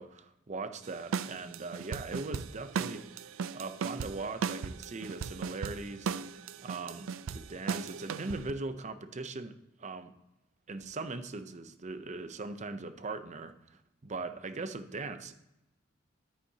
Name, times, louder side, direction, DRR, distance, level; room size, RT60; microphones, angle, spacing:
voice 1, 0.0-10.1 10.7-15.4, right 3 dB, 35° right, 10 dB, 0.6 m, -40 dB
sound 1, 0.8-8.5, right 6 dB, 85° right, 0.4 m, -37 dB
10.0 x 9.3 x 2.8 m, 0.90 s
head